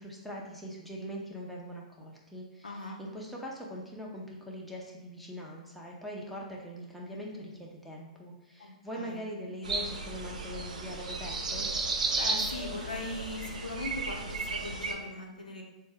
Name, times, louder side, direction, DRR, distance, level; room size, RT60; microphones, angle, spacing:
voice 1, 0.0-2.7 3.0-11.7, equal, ahead, -4 dB, 0.7 m, -42 dB
voice 2, 2.6-3.0 8.6-9.2 12.1-15.6, left 2 dB, 85° left, 0 dB, 0.8 m, -39 dB
sound 1, 9.6-14.9, right 3 dB, 75° right, 0.6 m, -34 dB
4.2 x 2.2 x 3.4 m, 1.0 s
figure-of-eight pair, 110°, 4 cm